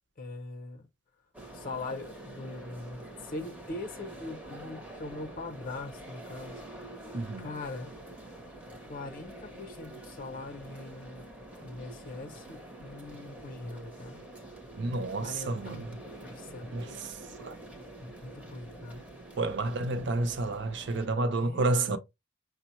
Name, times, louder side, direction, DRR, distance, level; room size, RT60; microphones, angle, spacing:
voice 1, 0.2-0.9 1.5-6.6 7.1-7.9 8.9-11.3 11.6-14.2 15.2-15.8 16.2-17.0 18.0-19.0 21.4-22.0, left 2 dB, 40° left, 0.6 m, -42 dB
sound 1, 1.3-21.1, right 1 dB, 5° right, 0.6 m, -46 dB
voice 2, 7.1-7.5 14.8-16.0 16.7-17.1 17.4-17.6 19.4-22.0, right 2 dB, 55° right, 0.5 m, -30 dB
5.9 x 2.0 x 2.9 m
head